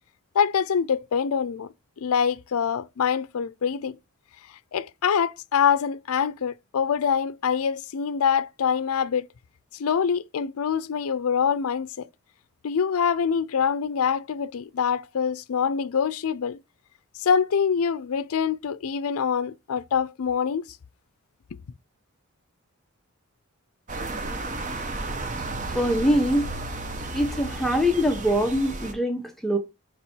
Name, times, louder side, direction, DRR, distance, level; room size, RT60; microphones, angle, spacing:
voice 1, 0.3-1.7 2.0-4.0 4.7-9.3 9.8-12.1 12.6-16.6 17.2-20.7, left 7 dB, 75° left, 0.4 m, -25 dB
sound 1, 23.9-28.9, right 2 dB, 35° right, 0.8 m, -33 dB
voice 2, 25.7-26.5 27.1-29.6, equal, ahead, 0.9 m, -23 dB
5.3 x 4.2 x 4.3 m
head